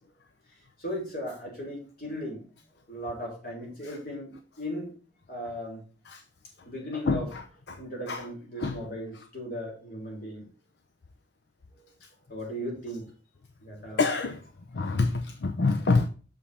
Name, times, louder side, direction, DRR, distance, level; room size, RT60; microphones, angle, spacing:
voice 1, 0.8-2.5 2.9-4.9 5.3-5.8 6.6-7.3 7.8-10.5 11.8-11.9 12.3-13.1 13.6-14.0, equal, 50° left, -2 dB, 3.6 m, -37 dB
voice 2, 6.9-7.8 8.1-8.3 8.6-8.8 14.0-14.4 14.7-16.1, left 3 dB, 75° left, 6 dB, 0.6 m, -27 dB
7.3 x 5.3 x 4.2 m, 0.37 s
head